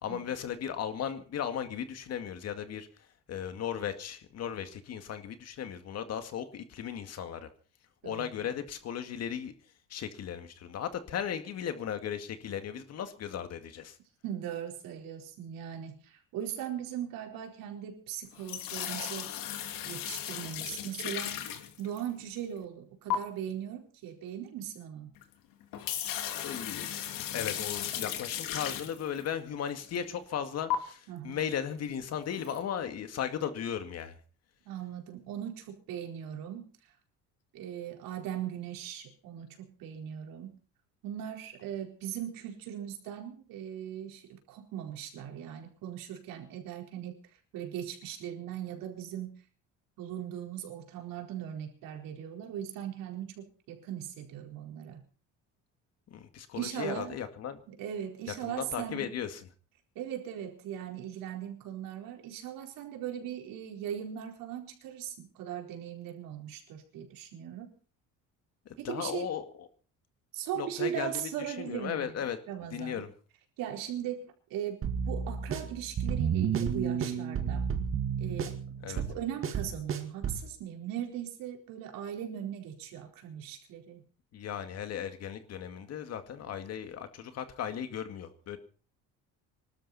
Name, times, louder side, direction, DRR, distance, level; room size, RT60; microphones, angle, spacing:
voice 1, 0.0-2.9 3.3-7.5 8.0-9.5 9.9-14.0 26.4-26.9 27.3-34.1 56.1-57.6 58.4-59.4 68.7-69.7 70.6-72.4 72.7-73.1 78.8-79.0 84.3-88.6, left 8 dB, 50° left, 9 dB, 2.1 m, -36 dB
voice 2, 8.0-8.4 14.2-19.3 19.8-21.5 21.8-25.1 31.1-31.4 34.7-36.7 37.5-40.6 41.0-49.4 50.0-55.0 56.6-57.2 57.7-59.1 59.9-67.7 68.8-69.3 70.3-72.2 72.5-73.0 73.6-77.7 78.2-78.5 78.9-84.0, right 10 dB, 85° right, 3 dB, 4.5 m, -39 dB
sound 1, 18.3-22.2 23.1-23.2 25.2-25.3 25.6-29.3 29.8-30.0 30.7-30.8 32.3-32.6, left 11 dB, 80° left, 2.8 m, -36 dB
sound 2, 74.8-80.5, right 7 dB, 40° right, 2.2 m, -31 dB
25.5 x 12.5 x 4.3 m, 0.39 s
cardioid pair, 160°, 33 cm